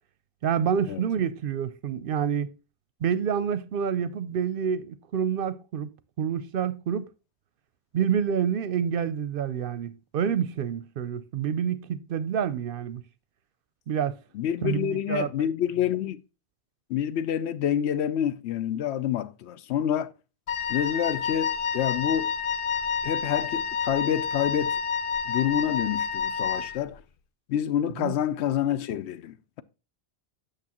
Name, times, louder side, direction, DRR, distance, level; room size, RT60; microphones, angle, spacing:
voice 1, 0.4-2.5 3.0-5.9 6.2-7.1 7.9-13.0 13.9-14.2 14.6-15.5 28.0-28.1, right 8 dB, 65° right, 0.7 m, -28 dB
voice 2, 14.3-16.2 16.9-20.1 20.7-22.3 23.0-24.8 25.3-27.0 27.5-29.6, left 10 dB, 90° left, 0.9 m, -28 dB
Wind instrument woodwind instrument, 20.5-26.8, left 6 dB, 60° left, 0.7 m, -29 dB
8.5 x 6.5 x 2.9 m
omnidirectional pair, 1.1 m